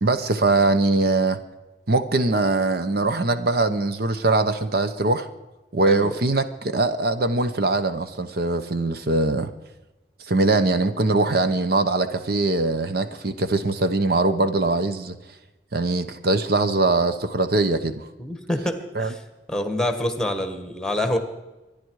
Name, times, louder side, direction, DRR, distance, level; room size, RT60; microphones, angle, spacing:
voice 1, 0.0-1.4 1.9-5.3 5.7-9.5 10.3-15.1 15.7-18.1 18.9-19.1, right 2 dB, 60° right, 10 dB, 0.9 m, -22 dB
voice 2, 5.8-6.1 18.2-19.2 19.5-21.2, left 1 dB, 5° left, 8 dB, 1.5 m, -26 dB
24.5 x 10.5 x 4.8 m, 1.1 s
head